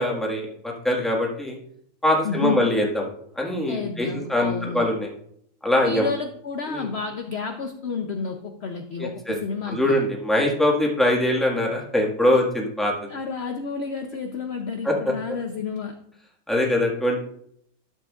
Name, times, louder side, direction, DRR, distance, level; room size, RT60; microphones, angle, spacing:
voice 1, 0.0-1.6 2.0-2.9 3.3-5.1 5.6-6.1 6.7-6.9 9.0-9.3 9.7-12.9 14.8-15.1 16.5-17.2, left 1 dB, ahead, -2 dB, 1.6 m, -23 dB
voice 2, 2.2-2.7 3.7-4.9 5.8-10.0 13.1-16.0, left 5 dB, 55° left, 5 dB, 0.8 m, -30 dB
12.5 x 7.4 x 2.4 m, 0.68 s
omnidirectional pair, 1.6 m